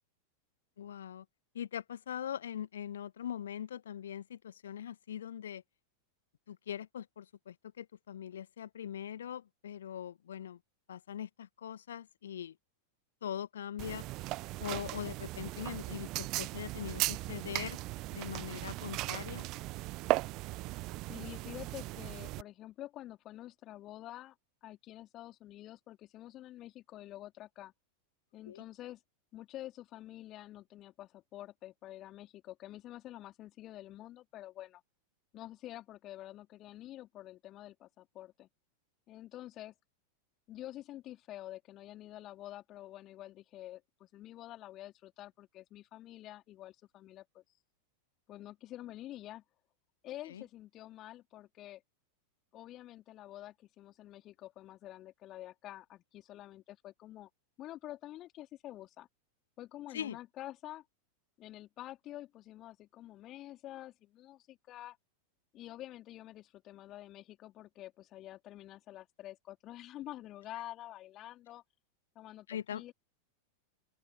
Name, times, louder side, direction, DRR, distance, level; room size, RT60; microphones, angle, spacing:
voice 1, 0.8-1.2 1.5-5.6 6.5-10.6 10.9-12.5 13.2-14.0 14.6-17.8 18.1-19.4 28.5-28.6 50.3-50.4 59.9-60.2 72.5-72.9, left 9 dB, 65° left, 1.8 m, -41 dB
sound 1, 13.8-22.4, right 20 dB, 40° right, 1.0 m, -37 dB
voice 2, 21.1-24.4 24.6-27.7 28.3-29.0 29.3-34.8 35.3-38.5 39.1-39.7 40.5-47.4 48.3-49.4 50.0-51.8 52.5-57.3 57.6-59.1 59.6-60.8 61.4-65.0 65.5-71.6 72.2-72.9, left 14 dB, 35° left, 3.7 m, -48 dB
open air
figure-of-eight pair, 90°, 0 cm